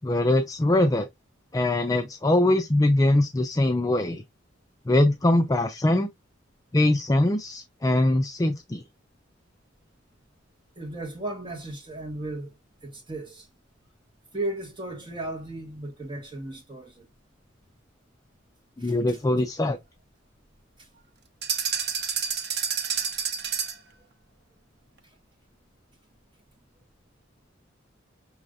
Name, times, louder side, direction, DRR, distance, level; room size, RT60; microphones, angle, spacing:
voice 1, 0.0-1.1 1.5-4.2 4.9-6.1 6.7-8.8 18.8-19.8, left 1 dB, 20° left, 0.4 m, -22 dB
voice 2, 10.7-12.5 12.8-13.5 14.3-17.0 18.8-19.2, right 2 dB, 25° right, 1.7 m, -35 dB
sound 1, 21.4-23.9, right 7 dB, 55° right, 1.0 m, -29 dB
6.3 x 3.2 x 2.6 m
head